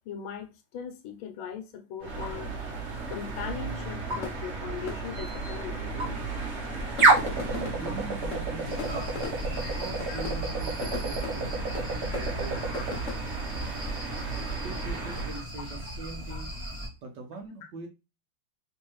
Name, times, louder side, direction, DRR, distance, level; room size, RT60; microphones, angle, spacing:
voice 1, 0.1-2.5 3.1-5.9 10.1-10.2 12.7-12.8 16.3-16.4, left 8 dB, 80° left, 1.5 m, -39 dB
sound 1, 2.0-15.4, right 3 dB, 45° right, 1.0 m, -30 dB
sound 2, 3.9-13.2, left 5 dB, 50° left, 1.0 m, -42 dB
voice 2, 7.3-9.2 9.6-11.6 12.1-12.7 14.6-16.5 17.0-17.9, right 3 dB, 65° right, 1.2 m, -42 dB
sound 3, 8.7-16.9, right 1 dB, 10° right, 1.4 m, -38 dB
3.4 x 3.1 x 3.0 m
omnidirectional pair, 2.2 m